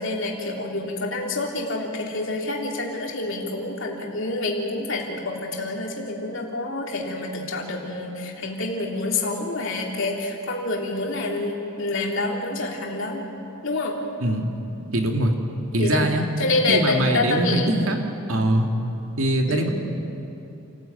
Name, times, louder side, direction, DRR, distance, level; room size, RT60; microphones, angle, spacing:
voice 1, 0.0-13.2 13.6-14.0 15.8-16.1 16.4-17.7 19.5-19.7, left 2 dB, 60° left, 0 dB, 3.2 m, -27 dB
voice 2, 14.9-15.3 15.7-16.2 16.7-18.0 18.3-18.7 19.2-19.7, right 1 dB, 70° right, 3 dB, 2.3 m, -22 dB
28.5 x 14.0 x 9.2 m, 2.9 s
head